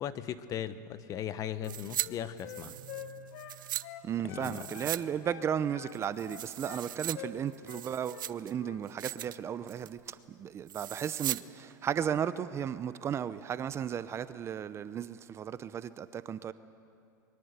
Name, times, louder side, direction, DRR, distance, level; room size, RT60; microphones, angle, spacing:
voice 1, 0.0-2.8 4.2-4.7, left 10 dB, 35° left, 1.1 m, -38 dB
Wind instrument woodwind instrument, 1.5-5.0 5.2-6.9 7.1-7.4 7.7-8.3 8.6-8.8, left 11 dB, 60° left, 2.0 m, -47 dB
sound 1, 1.6-2.1 2.4-3.8 4.4-5.0 5.3-5.4 5.9-7.1 7.5-8.5 8.9-9.4 9.7-10.0 10.7-11.4 11.7-11.8, right 12 dB, 85° right, 0.6 m, -38 dB
Guitar, 2.6-4.3, right 12 dB, 60° right, 2.0 m, -54 dB
voice 2, 4.0-16.5, right 8 dB, 25° right, 0.7 m, -35 dB
26.0 x 22.5 x 8.1 m
supercardioid pair, 125°, 11 cm